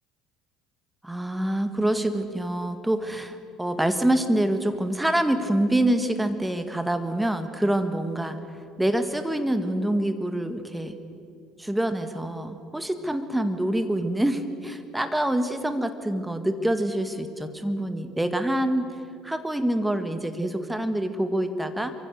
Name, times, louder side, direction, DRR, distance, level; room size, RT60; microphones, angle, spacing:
voice 1, 1.0-11.0 11.6-19.0 19.2-21.9, right 1 dB, 5° right, 9 dB, 2.0 m, -26 dB
24.5 x 24.5 x 6.7 m, 2.6 s
figure-of-eight pair, 60°, 0 cm